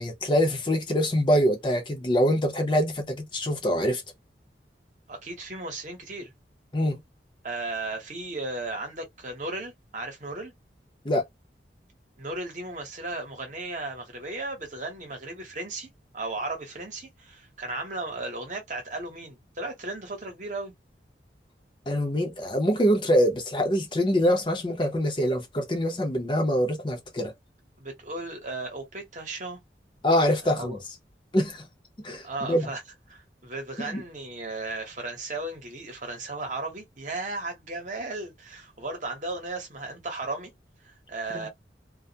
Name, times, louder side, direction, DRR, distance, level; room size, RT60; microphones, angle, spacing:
voice 1, 0.0-4.0 6.7-7.0 11.0-11.3 21.9-27.3 30.0-30.8 31.3-31.7 32.0-32.7 33.8-34.0 41.3-41.5, equal, 25° left, 0.6 m, -24 dB
voice 2, 5.1-6.3 7.4-10.5 12.2-20.7 27.8-29.6 30.4-30.8 32.2-32.8 33.1-40.5 40.8-41.5, right 2 dB, 45° right, 0.9 m, -35 dB
2.2 x 2.1 x 2.7 m
head